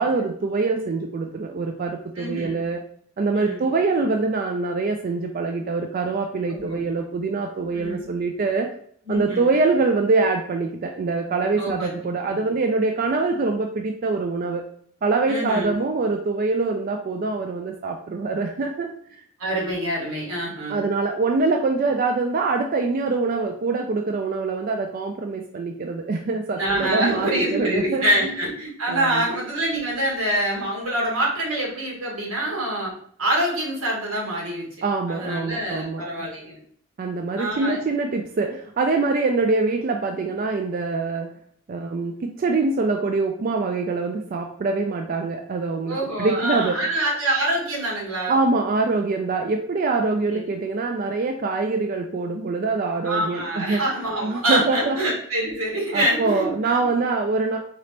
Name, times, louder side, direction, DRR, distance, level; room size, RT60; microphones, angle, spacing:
voice 1, 0.0-2.8 3.2-8.7 9.1-14.6 15.0-18.9 20.7-28.4 28.9-29.3 34.8-36.3 37.0-41.3 41.7-46.9 48.3-53.9 54.2-55.0 55.9-57.6, right 3 dB, 40° right, 3 dB, 0.3 m, -24 dB
voice 2, 2.2-2.6 3.3-3.6 6.5-6.8 7.7-8.0 9.1-9.5 11.6-11.9 12.3-12.4 15.3-15.7 19.4-20.8 26.6-32.9 33.2-34.7 35.1-36.6 37.4-37.8 45.9-48.4 50.3-50.5 53.0-56.9, right 1 dB, 85° right, -2 dB, 1.5 m, -25 dB
3.8 x 2.8 x 3.3 m, 0.62 s
head